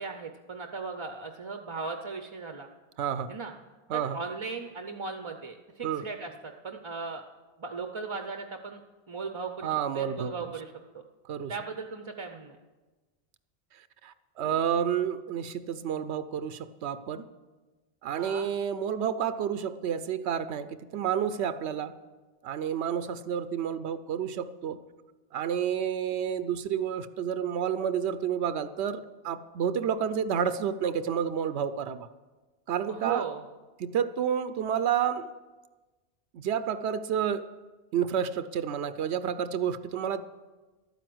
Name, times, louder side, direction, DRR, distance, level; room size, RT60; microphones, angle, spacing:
voice 1, 0.0-2.7 3.3-3.5 3.9-7.2 7.6-8.8 9.1-11.0 11.5-12.6 18.1-18.5 32.9-33.4, right 4 dB, 35° right, 6 dB, 0.6 m, -37 dB
voice 2, 3.0-3.3 3.9-4.2 5.8-6.1 9.6-10.3 11.3-11.5 14.0-17.3 18.0-21.9 22.4-24.8 25.3-32.1 32.7-33.3 33.8-35.3 36.3-37.4 37.9-40.2, right 8 dB, 85° right, 13 dB, 0.9 m, -30 dB
12.0 x 9.2 x 7.8 m, 1.2 s
omnidirectional pair, 1.1 m